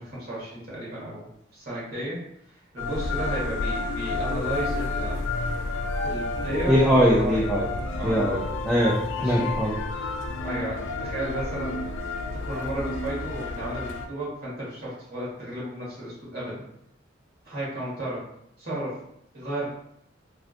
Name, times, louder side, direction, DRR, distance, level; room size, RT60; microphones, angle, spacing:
voice 1, 0.0-2.2 2.7-5.2 6.0-7.5 7.9-8.2 9.2-9.4 10.4-11.8 12.4-16.7 17.4-18.2 18.6-19.0 19.3-19.7, right 1 dB, 55° right, -7 dB, 1.5 m, -33 dB
sound 1, 2.8-14.1, left 3 dB, 75° left, 0.3 m, -30 dB
voice 2, 6.7-7.7 8.0-9.0 9.2-9.7, equal, 5° right, -6 dB, 0.4 m, -21 dB
3.3 x 2.5 x 2.5 m, 0.74 s
head